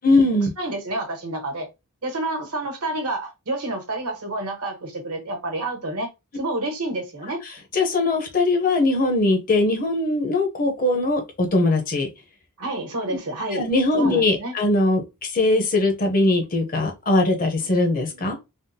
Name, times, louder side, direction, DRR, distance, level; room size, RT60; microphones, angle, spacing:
voice 1, 0.0-0.5 7.7-12.1 13.5-15.0 15.3-18.4, left 2 dB, 40° left, 0.7 m, -20 dB
voice 2, 0.6-1.7 2.0-7.4 12.6-13.7 14.0-14.5, right 2 dB, 80° right, 1.1 m, -29 dB
3.5 x 2.1 x 2.7 m
head